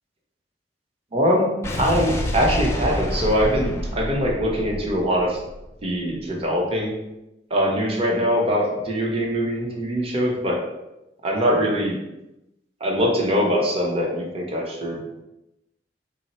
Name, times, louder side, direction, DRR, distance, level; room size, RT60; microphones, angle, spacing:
voice 1, 1.1-1.5 1.8-5.4 5.8-6.9 7.5-10.6 11.2-11.9 12.8-15.2, equal, 35° right, -2 dB, 0.7 m, -22 dB
Explosion, 1.6-6.0, left 1 dB, 15° left, 0.4 m, -28 dB
3.9 x 2.0 x 4.1 m, 0.93 s
head